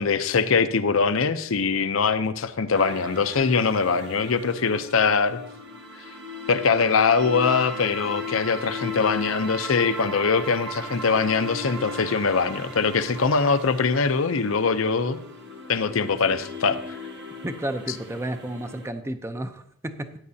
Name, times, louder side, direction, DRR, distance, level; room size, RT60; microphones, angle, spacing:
voice 1, 0.0-5.4 6.5-15.2 15.7-16.8, left 5 dB, 80° left, 0.6 m, -22 dB
sound 1, 2.7-18.9, left 2 dB, 55° right, 1.5 m, -37 dB
voice 2, 17.4-20.2, right 1 dB, 15° right, 0.6 m, -32 dB
14.5 x 9.6 x 2.8 m
head